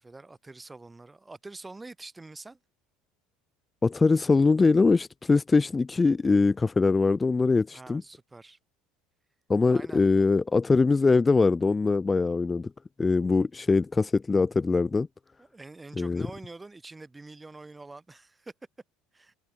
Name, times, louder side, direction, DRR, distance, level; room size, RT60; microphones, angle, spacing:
voice 1, 0.0-2.6 7.7-8.6 9.7-10.1 15.4-18.5 19.1-19.3, right 3 dB, 15° right, 1.7 m, -45 dB
voice 2, 3.8-8.0 9.5-12.7 13.0-15.1 16.0-16.3, left 4 dB, 20° left, 0.4 m, -22 dB
figure-of-eight pair, 70°, 0 cm